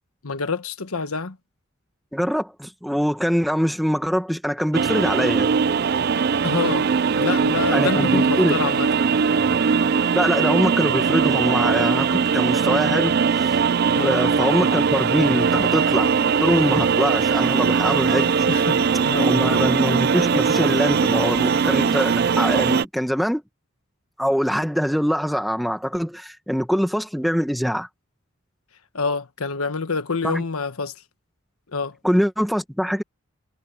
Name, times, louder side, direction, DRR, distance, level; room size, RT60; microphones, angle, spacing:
voice 1, 0.2-1.4 6.4-8.9 14.0-14.2 18.5-19.4 28.9-30.9 31.7-32.0, left 4 dB, 85° left, 1.2 m, -27 dB
voice 2, 2.1-5.5 7.7-8.6 10.1-13.1 13.4-13.5 14.0-18.5 19.2-23.4 24.2-27.9 30.2-30.4 32.0-33.0, equal, ahead, 1.8 m, -23 dB
sound 1, 4.7-22.8, right 6 dB, 45° right, 0.4 m, -20 dB
head